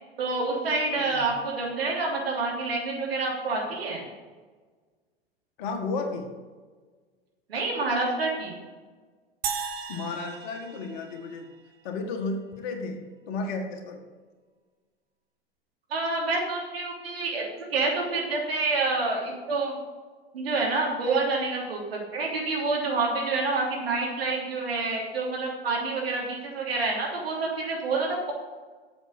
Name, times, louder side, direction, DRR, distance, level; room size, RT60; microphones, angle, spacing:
voice 1, 0.2-4.1 7.5-8.6 15.9-17.4 17.7-19.7 20.3-28.3, right 3 dB, 70° right, -2 dB, 3.2 m, -28 dB
voice 2, 1.0-1.3 5.6-6.3 9.9-11.5 11.8-13.0 13.3-14.0, left 3 dB, 50° left, 4 dB, 1.8 m, -33 dB
sound 1, 9.4-11.9, right 6 dB, 30° right, 1.2 m, -36 dB
7.9 x 7.3 x 6.5 m, 1.4 s
figure-of-eight pair, 90°, 31 cm